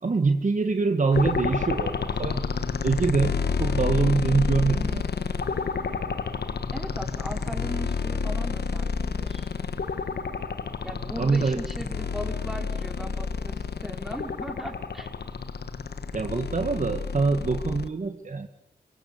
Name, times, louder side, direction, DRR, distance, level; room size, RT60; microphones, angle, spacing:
voice 1, 0.0-2.5 2.8-5.0 11.2-11.6 16.1-18.5, right 4 dB, 50° right, 6 dB, 1.7 m, -24 dB
sound 1, 1.1-17.9, left 5 dB, 80° left, 1.4 m, -29 dB
voice 2, 6.7-9.5 10.8-15.1, equal, ahead, 2 dB, 5.0 m, -38 dB
25.0 x 23.5 x 8.0 m, 0.79 s
wide cardioid pair, 80°, 17 cm